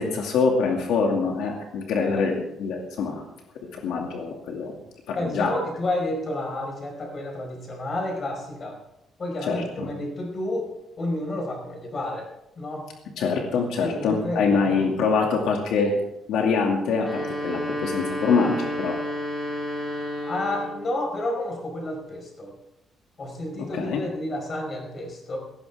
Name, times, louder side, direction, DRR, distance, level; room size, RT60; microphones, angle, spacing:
voice 1, 0.0-3.2 3.7-4.7 5.1-5.5 9.5-9.9 13.2-15.9 16.3-19.0 23.7-24.0, left 5 dB, 85° left, 1 dB, 2.4 m, -24 dB
voice 2, 5.1-8.8 9.2-10.7 11.0-12.3 12.6-12.9 13.8-14.8 20.3-22.5 23.2-25.4, left 1 dB, 30° left, 2 dB, 5.0 m, -30 dB
sound 1, 16.9-20.9, left 1 dB, 10° left, 4.7 m, -31 dB
18.0 x 15.5 x 3.6 m, 0.83 s
cardioid pair, 160°, 0 cm